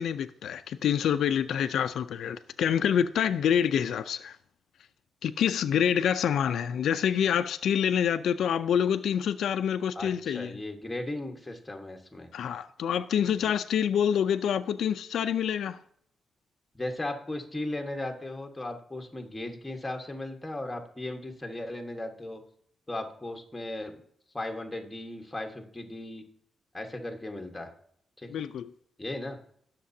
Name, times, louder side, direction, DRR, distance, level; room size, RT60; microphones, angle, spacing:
voice 1, 0.0-4.4 5.2-10.6 12.3-15.8 28.3-28.7, left 8 dB, 85° left, 0.5 m, -27 dB
voice 2, 9.9-12.3 13.4-13.5 16.7-22.4 22.9-24.0 24.3-26.2 26.7-27.7 28.2-28.3 29.0-29.4, left 1 dB, 10° left, 1.4 m, -36 dB
19.0 x 6.7 x 2.8 m
wide cardioid pair, 160°, 0 cm